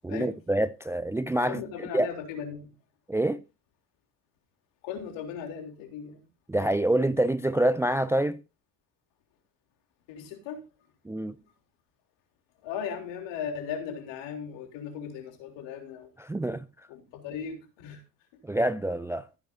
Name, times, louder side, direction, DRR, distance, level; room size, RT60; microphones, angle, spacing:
voice 1, 0.0-1.6 1.9-2.1 3.1-3.4 6.5-8.4 11.1-11.3 16.3-16.6 18.4-19.3, right 1 dB, 5° right, 0.4 m, -26 dB
voice 2, 1.5-2.7 4.8-6.3 10.1-10.6 12.6-16.1 16.9-18.0, left 7 dB, 70° left, 3.5 m, -37 dB
15.5 x 9.5 x 2.7 m
hypercardioid pair, 70°, 46 cm